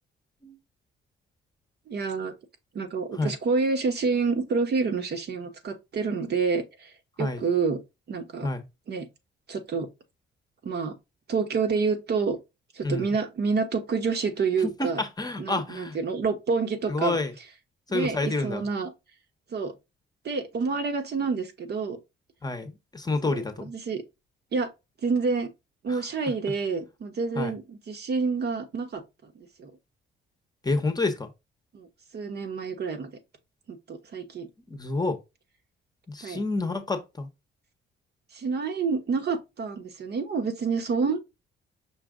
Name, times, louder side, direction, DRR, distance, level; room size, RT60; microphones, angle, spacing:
voice 1, 1.9-2.3 2.7-6.9 7.2-7.8 8.1-8.5 8.9-9.1 9.5-9.9 10.6-10.9 11.3-12.4 12.7-15.0 15.4-17.2 17.9-18.9 19.5-19.7 20.2-22.0 23.2-24.0 24.5-24.7 25.0-25.5 25.8-29.7 31.7-31.9 32.1-33.1 33.7-34.5 36.2-36.4 38.3-41.2, right 4 dB, 55° right, 1.1 m, -28 dB
voice 2, 12.8-13.1 14.6-16.0 16.9-17.3 17.9-18.7 22.4-23.7 25.9-26.0 27.4-27.5 30.6-31.3 34.7-35.2 36.1-37.3, left 2 dB, 20° left, 0.9 m, -29 dB
5.7 x 2.4 x 3.7 m
cardioid pair, 90°, 20 cm